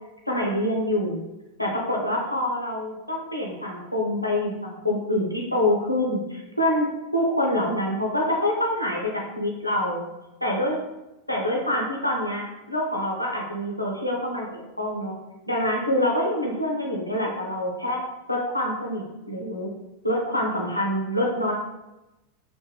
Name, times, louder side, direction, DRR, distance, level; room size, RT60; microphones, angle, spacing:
voice 1, 0.3-1.2 1.6-6.9 7.1-10.0 10.4-10.8 11.3-15.1 15.5-18.0 18.3-19.7 20.0-21.5, left 1 dB, 85° left, -2 dB, 0.4 m, -26 dB
2.9 x 2.1 x 2.3 m, 0.99 s
figure-of-eight pair, 90°, 0 cm